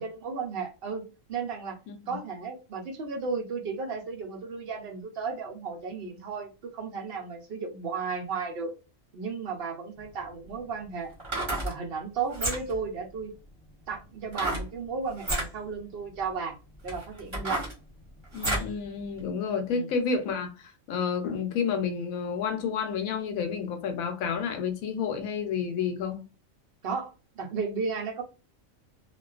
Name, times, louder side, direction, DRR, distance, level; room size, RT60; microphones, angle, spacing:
voice 1, 0.0-1.8 2.1-8.7 9.1-11.1 11.6-13.3 13.9-16.6 16.8-17.7 19.7-19.9 26.8-28.2, right 5 dB, 55° right, 0.8 m, -34 dB
voice 2, 1.9-2.2 18.3-26.2, left 6 dB, 90° left, 1.0 m, -30 dB
sound 1, 10.0-10.1 11.1-11.7 12.3-12.8 14.3-14.7 15.2-15.5 16.2-16.3 16.9-18.7 19.2-19.3, right 1 dB, 25° right, 0.9 m, -31 dB
2.4 x 2.2 x 2.3 m
omnidirectional pair, 1.4 m